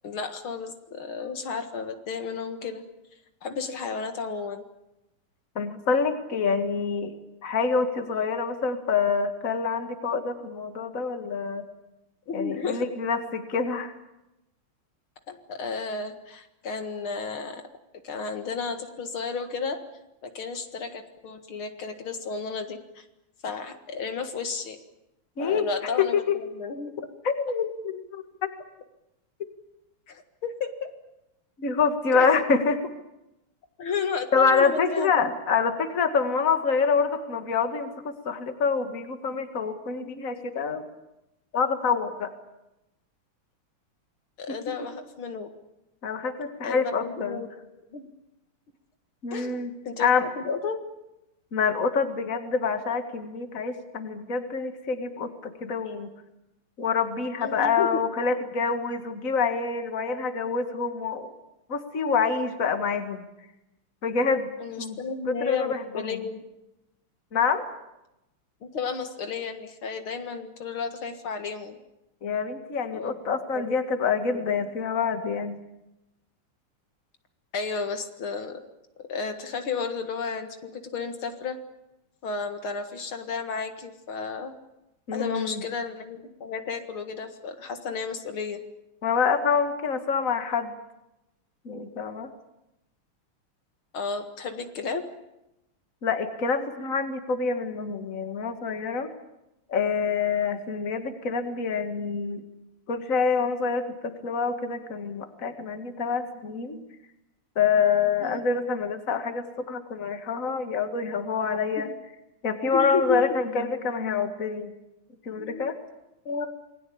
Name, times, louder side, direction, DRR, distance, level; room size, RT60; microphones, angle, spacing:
voice 1, 0.0-2.8 3.4-4.6 12.3-12.8 15.3-17.6 18.0-19.8 20.2-23.1 23.4-24.8 25.4-26.9 30.1-30.9 32.1-32.4 33.8-35.1 44.4-45.5 46.6-47.5 47.9-48.1 49.3-49.6 49.9-50.8 57.4-58.0 64.6-66.4 68.6-71.8 72.9-73.2 73.6-73.7 74.1-74.6 77.5-78.6 79.0-81.6 82.2-84.5 85.1-88.6 93.9-95.0 108.2-108.4 111.8-111.9 112.7-113.2 115.4-115.7 116.3-116.5, left 5 dB, 70° left, 7 dB, 2.6 m, -33 dB
voice 2, 5.6-7.1 7.4-11.6 12.3-13.9 25.4-25.7 26.0-26.4 27.2-28.5 31.6-32.8 34.3-40.8 41.5-42.3 44.5-44.6 46.0-47.4 49.2-49.7 50.0-50.3 51.5-56.1 56.8-61.3 61.7-63.3 64.0-65.0 65.3-66.2 67.3-67.6 72.2-75.6 85.1-85.6 89.0-90.7 91.6-92.3 96.0-99.1 99.7-102.4 102.9-106.9 107.6-111.9 112.4-114.7 115.2-115.8, left 5 dB, 40° left, 7 dB, 2.3 m, -26 dB
28.0 x 21.0 x 8.7 m, 0.91 s
omnidirectional pair, 2.4 m